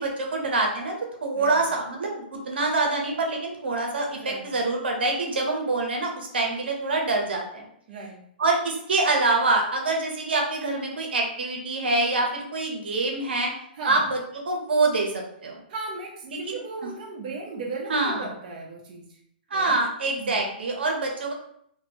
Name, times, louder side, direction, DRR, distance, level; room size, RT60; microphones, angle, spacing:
voice 1, 0.0-7.6 8.4-13.5 13.9-14.2 14.4-15.6 16.2-16.9 17.9-18.3 19.5-21.3, right 2 dB, 80° right, 0 dB, 1.0 m, -25 dB
voice 2, 1.3-1.7 4.1-4.5 7.9-8.3 13.8-14.0 15.7-19.1 19.5-19.8 20.2-20.4, right 3 dB, 50° right, -2 dB, 0.8 m, -36 dB
2.9 x 2.7 x 2.9 m, 0.69 s
hypercardioid pair, 135°, 6 cm